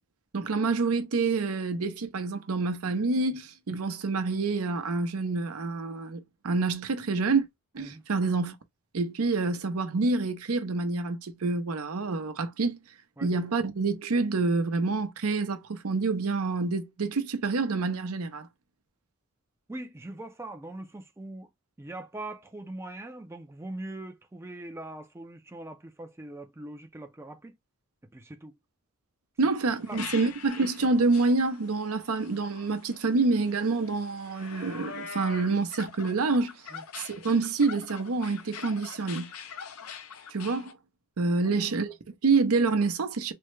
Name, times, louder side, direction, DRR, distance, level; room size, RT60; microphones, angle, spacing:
voice 1, 0.3-7.5 7.7-8.5 8.9-12.8 13.2-18.5 29.4-36.5 37.0-39.3 40.3-40.8 41.2-43.3, right 3 dB, 80° right, 0.6 m, -27 dB
voice 2, 19.7-21.5 21.8-27.5 28.0-28.5 29.9-30.0 36.7-36.8 41.4-41.7, right 1 dB, 10° right, 0.4 m, -41 dB
sound 1, 29.5-40.7, left 6 dB, 80° left, 0.6 m, -44 dB
3.4 x 2.1 x 3.1 m
head